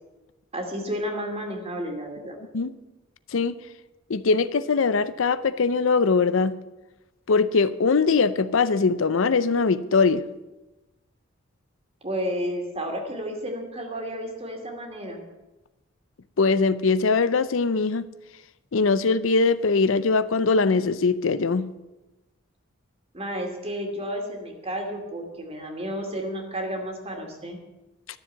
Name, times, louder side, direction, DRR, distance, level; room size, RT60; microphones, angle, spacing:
voice 1, 0.5-2.4 12.0-15.2 23.1-27.6, equal, 30° right, 3 dB, 2.5 m, -32 dB
voice 2, 4.1-6.5 7.3-10.2 16.4-18.1 18.7-21.7, left 4 dB, 70° left, 14 dB, 0.6 m, -21 dB
13.0 x 7.4 x 9.0 m, 1.0 s
head